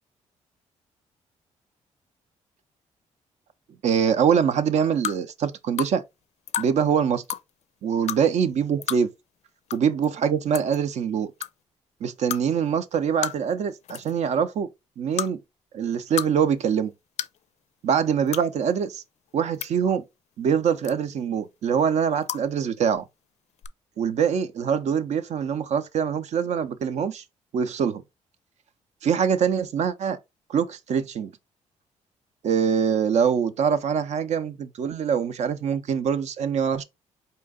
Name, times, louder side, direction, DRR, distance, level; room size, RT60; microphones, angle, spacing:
voice 1, 3.8-6.0 6.6-7.2 7.8-9.1 9.7-11.3 12.0-14.7 15.0-15.4 15.7-16.9 17.8-19.0 19.3-20.0 20.4-23.1 24.0-27.2 27.5-28.0 29.0-30.2 30.5-31.3 32.4-36.8, right 7 dB, 65° right, 0.6 m, -24 dB
sound 1, 5.0-5.2 5.8-5.9 6.5-6.7 7.2-7.4 8.1-8.2 8.8-9.0 9.7-9.8 10.0-10.1 10.5-10.8 11.4-11.5 12.3-12.4 13.2-13.5 13.8-14.1 15.1-15.3 15.9-16.3 16.6-16.7 17.2-17.4 18.3-18.4 19.3-19.7 20.8-21.2 22.2-22.4 23.6-23.7, left 10 dB, 65° left, 0.4 m, -30 dB
4.4 x 2.8 x 3.6 m
cardioid pair, 95°, 13 cm